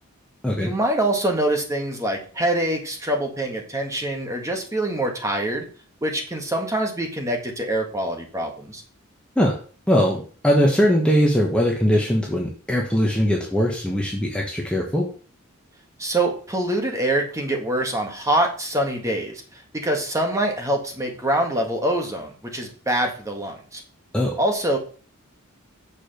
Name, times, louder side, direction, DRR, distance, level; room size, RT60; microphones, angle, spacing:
voice 1, 0.6-5.6 6.0-8.8 16.0-23.8 24.4-24.8, right 1 dB, 15° right, 2 dB, 1.7 m, -25 dB
voice 2, 9.9-15.1 24.1-24.3, equal, 5° left, -2 dB, 1.2 m, -20 dB
6.9 x 4.9 x 6.5 m, 0.40 s
head